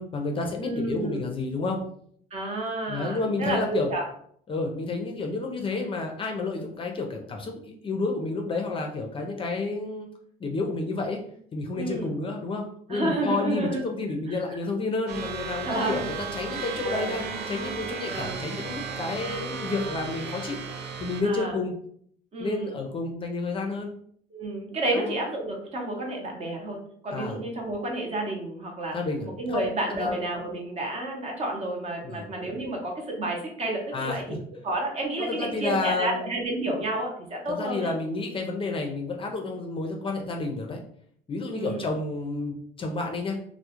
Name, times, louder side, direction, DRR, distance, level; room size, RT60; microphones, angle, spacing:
voice 1, 0.0-1.8 2.9-3.9 4.5-10.1 10.4-11.2 11.5-20.6 21.0-21.7 22.4-23.9 24.9-25.2 27.1-27.4 28.9-29.6 29.9-30.2 32.0-32.3 33.9-34.4 35.2-36.3 37.5-40.8 41.3-43.4, left 3 dB, 30° left, 2 dB, 0.4 m, -30 dB
voice 2, 0.6-1.2 2.3-4.0 11.7-12.1 12.9-13.8 14.5-14.6 15.6-16.1 16.8-17.2 18.0-18.5 21.2-21.6 22.3-22.8 24.3-29.0 29.2-37.9 41.5-41.9, right 2 dB, 40° right, 1 dB, 0.7 m, -30 dB
sound 1, 15.1-21.2, right 5 dB, 80° right, 0.5 m, -35 dB
2.2 x 2.0 x 2.9 m, 0.63 s
cardioid pair, 110°, 17 cm